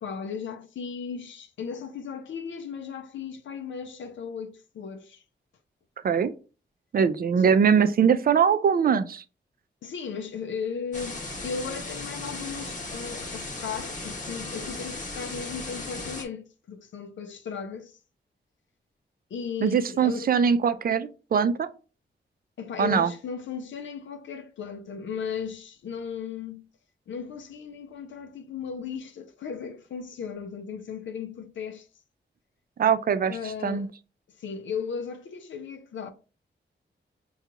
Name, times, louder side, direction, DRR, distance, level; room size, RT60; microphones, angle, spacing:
voice 1, 0.0-5.2 7.4-7.5 9.8-18.0 19.3-20.3 22.6-26.7 27.1-31.9 33.3-33.9 34.4-36.1, left 6 dB, 85° left, 0.5 m, -36 dB
voice 2, 6.9-9.2 19.6-21.7 22.8-23.1 32.8-33.4 33.6-33.9, right 7 dB, 50° right, 0.4 m, -22 dB
sound 1, 10.9-16.2, left 2 dB, 40° left, 1.1 m, -36 dB
5.8 x 2.3 x 2.8 m
wide cardioid pair, 120°, 19 cm